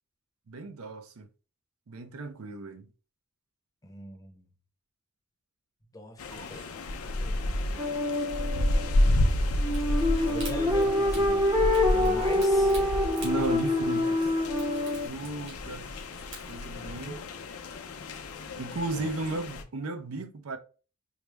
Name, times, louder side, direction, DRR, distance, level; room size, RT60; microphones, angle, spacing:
voice 1, 0.5-1.3 1.9-2.9 6.3-6.6 7.7-7.8 13.2-14.2 15.0-16.0 16.5-17.2 18.6-20.6, right 2 dB, 80° right, 0.5 m, -35 dB
voice 2, 3.8-4.5 5.9-6.7 7.1-7.5 9.9-12.8 19.0-19.1, left 1 dB, 15° left, 0.7 m, -42 dB
sound 1, 6.2-19.6, left 1 dB, 85° left, 0.6 m, -31 dB
sound 2, 7.8-15.1, left 1 dB, 20° right, 0.7 m, -26 dB
sound 3, 9.6-16.8, right 3 dB, 60° right, 2.1 m, -49 dB
4.7 x 2.0 x 3.3 m
head